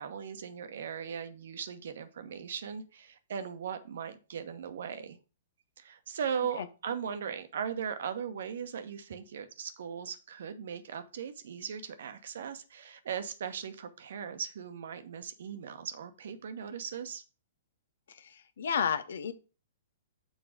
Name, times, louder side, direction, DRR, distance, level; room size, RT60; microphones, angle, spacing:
voice 1, 0.0-5.2 5.8-17.2, right 7 dB, 65° right, 10 dB, 1.0 m, -38 dB
voice 2, 18.1-19.3, left 7 dB, 70° left, 12 dB, 0.8 m, -32 dB
6.5 x 4.5 x 4.8 m, 0.33 s
hypercardioid pair, 120°, 0 cm